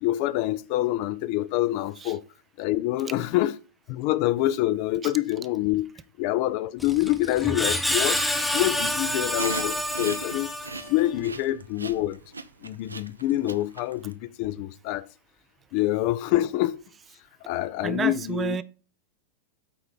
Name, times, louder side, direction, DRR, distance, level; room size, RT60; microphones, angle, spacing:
voice 1, 0.0-2.2 2.6-3.5 3.9-5.9 6.2-8.2 8.5-10.5 10.9-12.2 12.6-15.1 15.7-16.8 17.5-18.6, left 15 dB, 45° left, 0.4 m, -26 dB
Screech, 6.8-11.1, equal, 5° left, 0.8 m, -28 dB
sound 1, 9.0-14.1, right 3 dB, 80° right, 0.5 m, -37 dB
voice 2, 17.8-18.6, right 6 dB, 20° right, 0.4 m, -30 dB
8.5 x 3.9 x 4.9 m
figure-of-eight pair, 90°, 0 cm